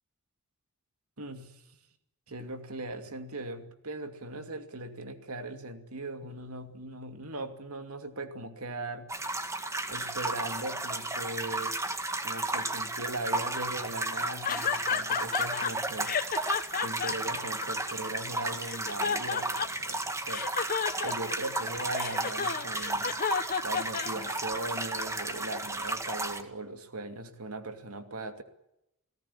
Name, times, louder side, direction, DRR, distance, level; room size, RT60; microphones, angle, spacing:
voice 1, 1.2-1.8 2.3-9.3 9.9-11.8 12.2-16.2 16.8-20.5 21.0-23.2 23.6-28.4, right 2 dB, 80° right, 2.6 m, -39 dB
sound 1, 9.1-26.4, right 2 dB, 15° right, 2.0 m, -33 dB
sound 2, 14.4-15.7 16.0-18.2 18.6-19.9 20.3-24.6, left 6 dB, 40° left, 1.3 m, -31 dB
29.5 x 18.0 x 8.6 m
head